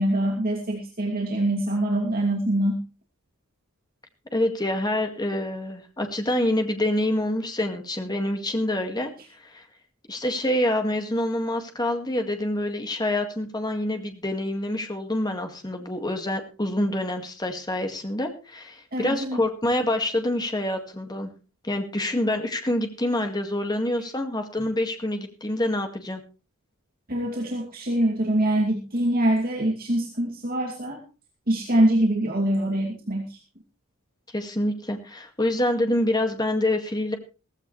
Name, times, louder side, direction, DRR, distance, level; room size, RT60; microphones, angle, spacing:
voice 1, 0.0-2.8 18.9-19.4 27.1-31.0 31.5-33.4, right 1 dB, 45° right, -1 dB, 2.6 m, -24 dB
voice 2, 4.3-9.1 9.5-9.6 10.1-21.3 21.6-26.2 34.3-37.2, left 1 dB, 20° left, 5 dB, 2.0 m, -26 dB
16.0 x 15.5 x 3.3 m, 0.34 s
head